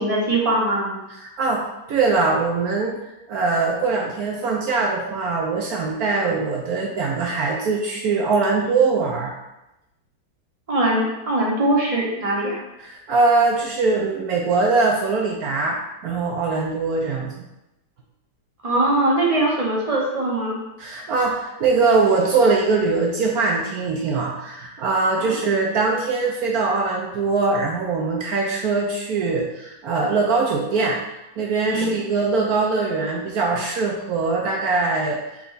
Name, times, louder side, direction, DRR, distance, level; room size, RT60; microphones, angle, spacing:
voice 1, 0.0-1.0 10.7-12.6 18.6-20.6 25.2-25.4 31.7-31.8, right 1 dB, 40° right, -4 dB, 0.5 m, -21 dB
voice 2, 1.1-3.0 3.3-9.3 12.8-17.3 20.8-31.0 31.4-35.2, right 4 dB, 70° right, -1 dB, 0.9 m, -22 dB
4.5 x 3.1 x 3.9 m, 0.93 s
omnidirectional pair, 2.1 m